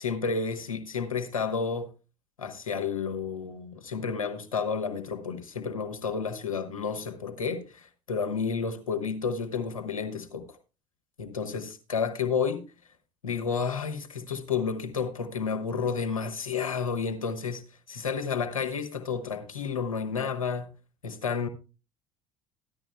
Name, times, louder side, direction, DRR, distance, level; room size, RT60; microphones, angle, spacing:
voice 1, 0.0-1.9 2.4-10.5 11.2-12.6 13.2-17.6 17.9-20.7 21.0-21.5, left 5 dB, 85° left, 1.0 m, -31 dB
14.0 x 11.0 x 2.2 m
figure-of-eight pair, 60°, 17 cm